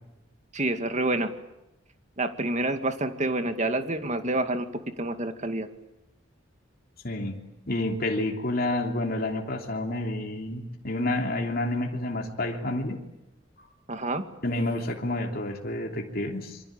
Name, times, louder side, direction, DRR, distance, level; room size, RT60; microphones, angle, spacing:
voice 1, 0.5-1.3 2.2-4.7 5.0-5.7 13.9-14.2, right 2 dB, 40° right, 7 dB, 2.3 m, -28 dB
voice 2, 7.0-7.4 7.7-13.0 14.4-16.6, left 1 dB, 50° left, 1 dB, 3.1 m, -29 dB
27.5 x 24.0 x 8.9 m, 0.90 s
head